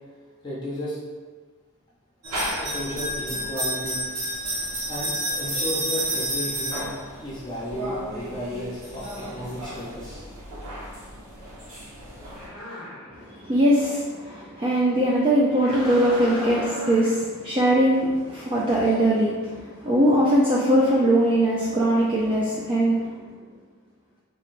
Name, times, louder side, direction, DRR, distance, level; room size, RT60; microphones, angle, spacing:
voice 1, 0.4-1.0 2.6-4.0 4.9-5.1 5.4-6.9 7.2-10.2, left 1 dB, 20° left, -7 dB, 0.6 m, -33 dB
sound 1, 2.2-12.5, right 1 dB, 85° right, 1.1 m, -31 dB
sound 2, 12.3-13.3 15.5-17.2, equal, ahead, 1.4 m, -36 dB
voice 2, 13.1-23.2, right 1 dB, 25° right, -6 dB, 0.4 m, -21 dB
3.7 x 3.2 x 2.5 m, 1.4 s
head